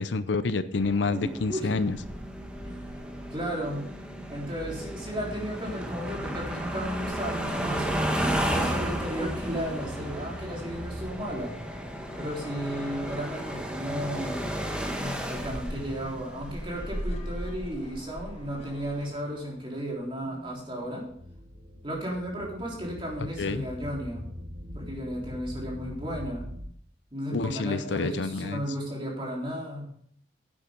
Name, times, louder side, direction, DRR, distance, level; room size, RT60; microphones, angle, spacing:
voice 1, 0.0-2.0 23.4-23.6 27.3-28.6, left 3 dB, 75° left, 13 dB, 0.6 m, -28 dB
sound 1, 0.7-18.9, equal, 5° right, 1.2 m, -33 dB
voice 2, 1.1-1.7 2.6-3.9 4.3-7.9 8.4-11.6 12.2-14.5 15.3-21.1 21.8-24.2 24.7-26.4 27.1-29.8, equal, 25° right, -3 dB, 3.6 m, -34 dB
sound 2, 8.2-20.9, left 2 dB, 35° left, 1.3 m, -50 dB
sound 3, 21.0-26.6, equal, 65° right, 4.2 m, -42 dB
11.0 x 8.7 x 5.1 m, 0.65 s
head